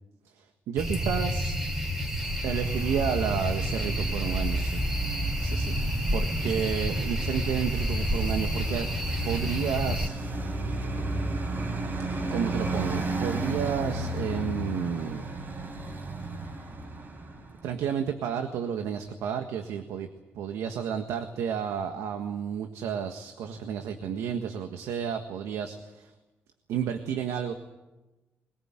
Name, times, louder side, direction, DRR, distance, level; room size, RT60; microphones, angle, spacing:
voice 1, 0.4-1.6 2.4-4.8 5.4-5.7 6.1-8.9 9.2-10.1 12.3-15.3 17.6-20.1 20.3-26.1 26.7-27.5, right 8 dB, 90° right, 6 dB, 1.6 m, -31 dB
sound 1, 0.8-10.1, equal, 10° right, 3.7 m, -29 dB
Traffic noise roadway noise, 2.2-17.7, right 2 dB, 45° right, 3.9 m, -33 dB
22.0 x 19.5 x 9.0 m, 1.1 s
cardioid pair, 100°, 5 cm